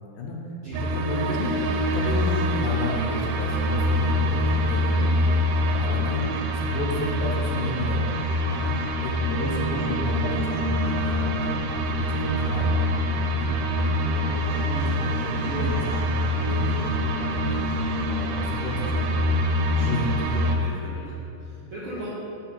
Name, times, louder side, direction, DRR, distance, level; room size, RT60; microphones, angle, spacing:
sound 1, 0.7-20.6, equal, 85° right, 2.2 m, -25 dB
voice 1, 0.8-5.0 5.5-8.2 8.5-8.7 9.0-12.7 13.3-13.5 14.1-16.2 16.4-17.6 18.1-19.2 19.7-20.9 21.5-21.7, left 2 dB, 80° left, -1 dB, 2.3 m, -32 dB
voice 2, 13.8-14.3 19.7-20.0 20.6-22.1, right 1 dB, 70° right, -10 dB, 1.3 m, -39 dB
5.8 x 3.3 x 5.8 m, 2.8 s
omnidirectional pair, 3.9 m